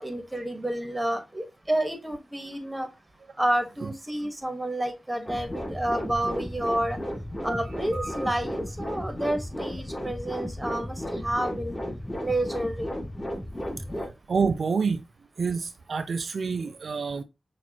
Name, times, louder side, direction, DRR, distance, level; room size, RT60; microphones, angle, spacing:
voice 1, 0.0-2.9 3.4-7.0 7.4-11.7 12.2-12.9, right 1 dB, 15° right, 1.2 m, -29 dB
sound 1, 5.3-14.1, equal, 25° left, 2.4 m, -34 dB
voice 2, 13.8-15.0 15.4-17.2, right 5 dB, 75° right, 0.3 m, -28 dB
5.9 x 2.5 x 2.9 m
cardioid pair, 45°, 0 cm